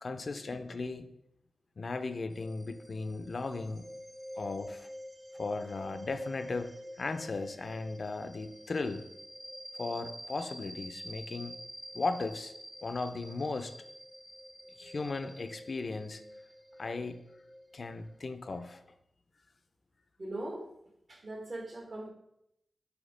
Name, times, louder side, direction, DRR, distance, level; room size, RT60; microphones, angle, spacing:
voice 1, 0.0-1.1 1.8-3.9 4.4-4.9 5.3-9.1 9.8-11.6 11.9-12.5 12.8-13.7 14.8-16.2 16.8-17.2 17.7-18.8, left 3 dB, 60° left, 8 dB, 0.5 m, -36 dB
sound 1, 2.3-18.6, equal, 20° right, 1.0 m, -47 dB
voice 2, 20.2-20.7 21.1-22.1, right 1 dB, 50° right, 1 dB, 1.8 m, -41 dB
8.0 x 2.8 x 5.1 m, 0.80 s
cardioid pair, 45°, 0 cm